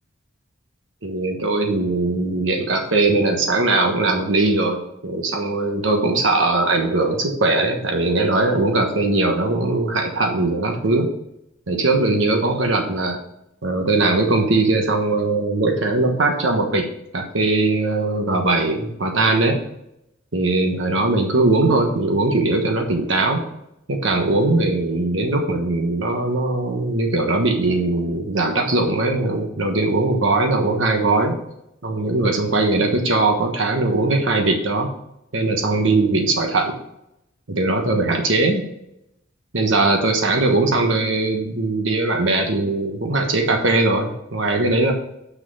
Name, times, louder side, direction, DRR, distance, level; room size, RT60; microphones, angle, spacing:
voice 1, 1.0-11.1 11.7-13.2 13.6-16.9 17.1-19.6 20.3-23.4 23.9-31.4 31.8-34.9 35.3-36.8 37.5-38.7 39.5-44.9, right 2 dB, 75° right, 3 dB, 1.2 m, -20 dB
6.3 x 5.8 x 5.6 m, 0.81 s
head